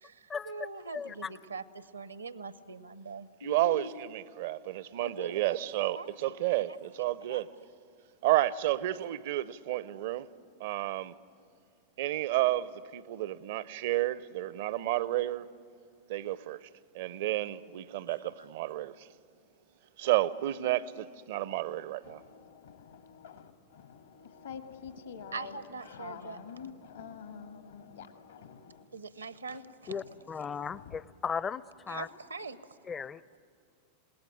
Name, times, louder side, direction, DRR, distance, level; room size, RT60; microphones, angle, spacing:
voice 1, 0.0-4.0 5.0-5.4 5.9-6.1 6.7-6.8 7.3-7.4 18.2-18.3 25.3-26.4 28.9-29.9 31.9-32.6, right 3 dB, 80° right, 0.9 m, -42 dB
voice 2, 0.9-1.3 29.9-32.1 32.8-33.2, left 6 dB, 20° left, 0.6 m, -36 dB
voice 3, 3.4-7.5 8.2-10.3 10.6-11.1 12.0-15.5 16.1-16.7 16.9-19.1 20.0-22.2, right 15 dB, 55° right, 0.6 m, -31 dB
voice 4, 22.0-28.9 29.8-31.0, left 7 dB, 70° left, 1.9 m, -48 dB
27.5 x 19.0 x 9.9 m
figure-of-eight pair, 90°, 0 cm